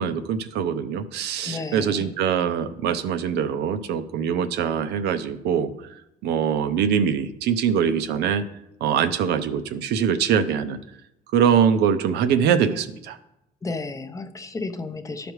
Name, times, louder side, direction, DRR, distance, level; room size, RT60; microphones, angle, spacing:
voice 1, 0.0-5.7 6.2-8.4 8.8-10.8 11.3-13.2, right 7 dB, 80° right, 10 dB, 0.6 m, -23 dB
voice 2, 1.4-2.1 13.6-15.3, left 3 dB, 20° left, 9 dB, 0.6 m, -32 dB
12.0 x 5.1 x 3.1 m, 0.84 s
cardioid pair, 110°, 17 cm